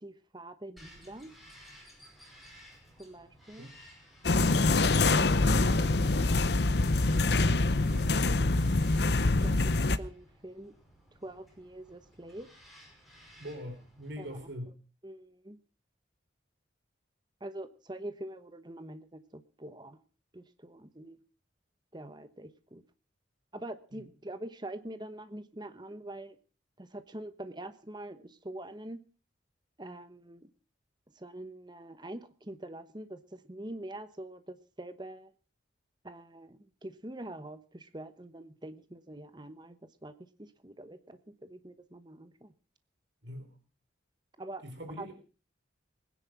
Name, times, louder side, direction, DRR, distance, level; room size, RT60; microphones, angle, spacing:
voice 1, 0.0-1.3 3.0-3.7 9.4-10.8 11.2-12.5 14.2-14.4 15.0-15.6 17.4-20.0 20.3-21.2 21.9-22.8 23.5-26.4 26.8-29.0 29.8-30.5 31.1-35.3 36.0-40.1 40.4-42.5 44.4-44.6 45.0-45.1, right 1 dB, 25° right, 10 dB, 1.0 m, -45 dB
Bird vocalization bird call bird song, 0.8-14.5, equal, ahead, 5.5 m, -56 dB
sound 1, 4.2-10.0, left 2 dB, 60° left, 0.8 m, -25 dB
voice 2, 13.4-14.7 23.9-24.0 43.2-43.5 44.6-45.1, equal, 70° right, 5 dB, 3.7 m, -42 dB
20.5 x 10.0 x 5.9 m, 0.37 s
head